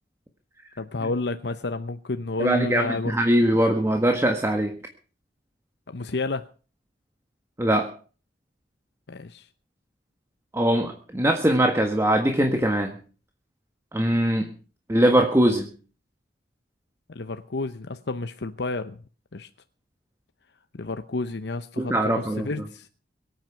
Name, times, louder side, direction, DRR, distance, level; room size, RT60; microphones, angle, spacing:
voice 1, 0.8-3.1 5.9-6.5 9.1-9.5 17.1-19.0 19.3-19.5 20.7-22.9, left 3 dB, 70° left, 9 dB, 0.8 m, -30 dB
voice 2, 2.4-4.7 7.6-7.9 10.5-12.9 13.9-14.5 14.9-15.7 21.8-22.5, right 1 dB, 15° right, 5 dB, 1.6 m, -21 dB
23.0 x 9.3 x 5.8 m, 0.39 s
head